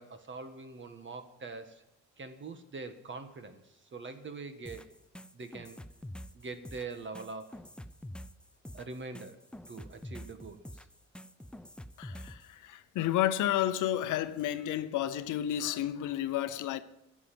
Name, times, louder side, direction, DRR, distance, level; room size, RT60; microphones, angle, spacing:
voice 1, 0.0-1.8 2.2-4.9 5.3-5.8 6.3-7.6 8.7-9.4 9.7-10.9, right 3 dB, 40° right, 1.6 m, -43 dB
sound 1, 4.7-12.5, left 1 dB, 5° left, 0.5 m, -46 dB
voice 2, 12.0-16.8, left 12 dB, 85° left, 0.8 m, -31 dB
12.0 x 7.5 x 9.1 m
cardioid pair, 90°, 30 cm